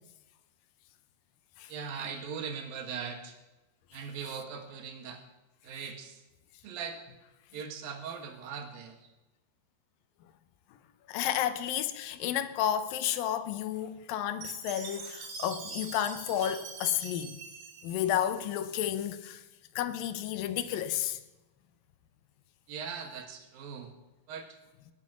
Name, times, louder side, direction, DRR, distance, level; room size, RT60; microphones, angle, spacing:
voice 1, 1.7-3.4 3.9-5.2 5.6-6.2 6.6-7.0 7.5-9.1 22.7-23.9 24.3-24.5, right 6 dB, 75° right, 3.2 m, -40 dB
voice 2, 11.1-17.4 17.8-19.4 19.8-21.2, left 11 dB, 80° left, 2.4 m, -31 dB
Chime, 14.4-18.7, right 5 dB, 55° right, 2.9 m, -44 dB
20.0 x 8.5 x 5.9 m
omnidirectional pair, 4.3 m